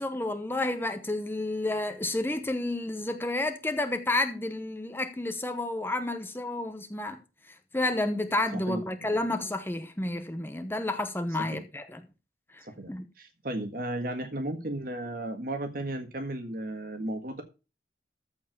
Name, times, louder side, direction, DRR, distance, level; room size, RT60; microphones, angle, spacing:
voice 1, 0.0-7.2 7.7-12.0 12.5-12.6 12.9-13.1, left 2 dB, 10° left, 0.9 m, -30 dB
voice 2, 8.5-8.8 9.1-9.2 11.4-11.6 12.6-12.9 13.2-17.4, right 1 dB, 55° right, 1.7 m, -34 dB
14.0 x 4.8 x 6.5 m
head